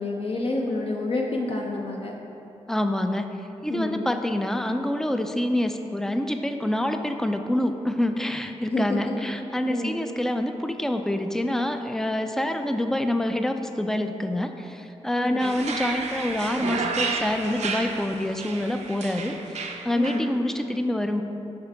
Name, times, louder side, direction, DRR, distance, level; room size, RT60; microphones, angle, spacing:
voice 1, 0.0-2.1 3.7-4.0 8.6-9.1 9.7-9.9 15.2-15.6 20.0-20.3, left 2 dB, 50° left, -1 dB, 0.6 m, -28 dB
voice 2, 2.7-3.3 3.6-21.2, left 1 dB, 5° left, 6 dB, 0.4 m, -26 dB
sound 1, 15.4-20.2, right 4 dB, 65° right, 0.5 m, -31 dB
5.5 x 5.1 x 3.4 m, 2.9 s
cardioid pair, 60°, 12 cm